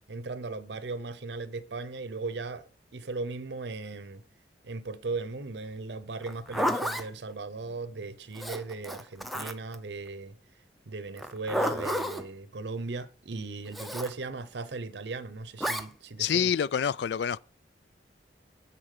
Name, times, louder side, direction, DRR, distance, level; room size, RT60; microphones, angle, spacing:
voice 1, 0.1-2.6 2.9-4.2 4.6-10.3 10.9-16.5, right 3 dB, 75° right, 0.7 m, -37 dB
Zipper (clothing), 6.2-7.1 8.4-9.8 11.2-12.2 13.7-14.1 15.6-15.9, equal, ahead, 0.6 m, -31 dB
voice 2, 16.2-17.4, left 8 dB, 70° left, 0.3 m, -27 dB
9.9 x 4.4 x 6.6 m
head